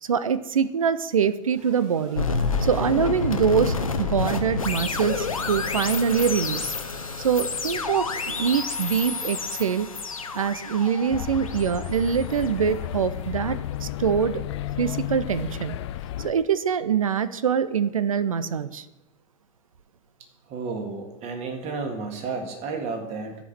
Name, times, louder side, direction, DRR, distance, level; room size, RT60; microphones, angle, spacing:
voice 1, 0.0-2.3 2.6-6.7 7.2-9.9 10.3-14.4 14.8-15.8 16.2-18.9, right 7 dB, 75° right, 15 dB, 0.5 m, -24 dB
sound 1, 1.4-5.2, right 3 dB, 60° right, 2.3 m, -51 dB
sound 2, 2.2-13.2, left 4 dB, 85° left, 0.9 m, -29 dB
sound 3, 11.1-16.3, left 12 dB, 55° left, 0.5 m, -32 dB
voice 2, 20.5-23.4, right 4 dB, 40° right, 4 dB, 2.0 m, -32 dB
13.0 x 5.2 x 6.0 m, 1.0 s
figure-of-eight pair, 85°, 17 cm